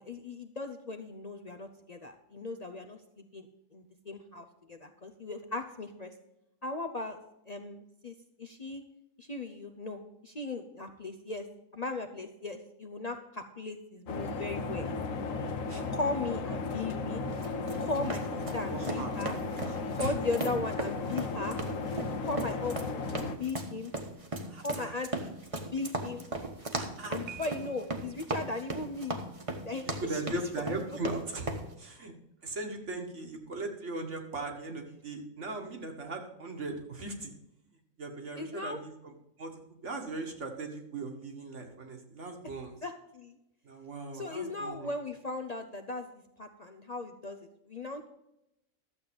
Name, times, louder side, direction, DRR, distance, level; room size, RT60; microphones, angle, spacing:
voice 1, 0.0-6.1 6.6-7.2 7.5-8.8 9.2-11.5 11.7-14.9 15.9-17.2 17.8-18.2 18.5-19.4 20.0-21.6 22.2-23.0 23.3-23.9 24.6-25.3 25.7-26.2 27.1-29.2 29.6-30.7 38.4-38.8 42.8-43.4 44.1-46.1 46.4-48.1, left 3 dB, 40° left, 5 dB, 0.6 m, -37 dB
sound 1, 14.1-23.4, left 3 dB, 70° left, 1.2 m, -35 dB
sound 2, 17.3-31.7, right 2 dB, 25° right, 1.3 m, -37 dB
voice 2, 18.3-20.1 24.5-24.9 26.7-27.4 29.9-32.1 32.4-37.3 38.0-42.8 43.6-44.9, right 3 dB, 60° right, 3 dB, 1.9 m, -39 dB
Piano, 27.3-28.2, right 7 dB, 90° right, 1.3 m, -48 dB
12.5 x 7.8 x 5.2 m, 0.87 s
omnidirectional pair, 1.4 m